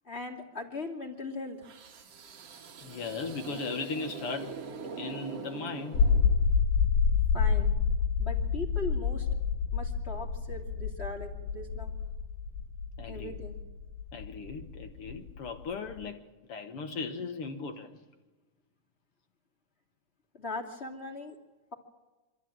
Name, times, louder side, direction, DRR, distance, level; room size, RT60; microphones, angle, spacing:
voice 1, 0.0-1.6 7.3-7.7 8.2-9.3 9.7-11.9 13.1-13.6 20.3-21.4, left 3 dB, 20° left, 2.4 m, -39 dB
sound 1, 1.6-6.7, right 5 dB, 55° right, 2.4 m, -43 dB
voice 2, 2.8-4.5 5.0-6.1 13.0-13.3 14.1-16.2 16.5-18.0, left 4 dB, 55° left, 1.8 m, -37 dB
sound 2, 5.9-16.0, left 6 dB, 90° left, 2.9 m, -28 dB
26.0 x 13.5 x 8.9 m
omnidirectional pair, 3.5 m